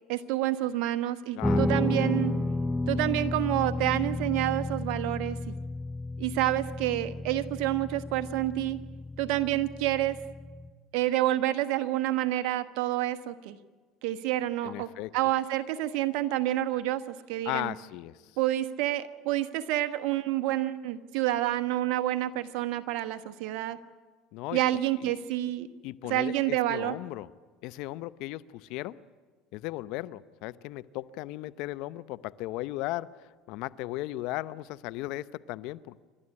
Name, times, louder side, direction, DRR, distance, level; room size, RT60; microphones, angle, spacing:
voice 1, 0.1-2.3 2.9-5.5 6.2-8.8 9.2-10.2 10.9-13.6 14.0-17.7 18.4-23.8 24.5-25.7 26.1-27.0, right 14 dB, 70° right, 10 dB, 1.2 m, -28 dB
voice 2, 1.4-1.7 14.6-15.1 17.4-18.1 24.3-24.6 25.0-25.1 25.8-27.3 27.6-29.0 29.5-33.1 33.5-36.0, left 17 dB, 70° left, 16 dB, 0.7 m, -36 dB
Guitar, 1.4-10.7, left 2 dB, 10° left, 1.0 m, -32 dB
28.5 x 12.5 x 9.8 m, 1.4 s
hypercardioid pair, 85°, 0 cm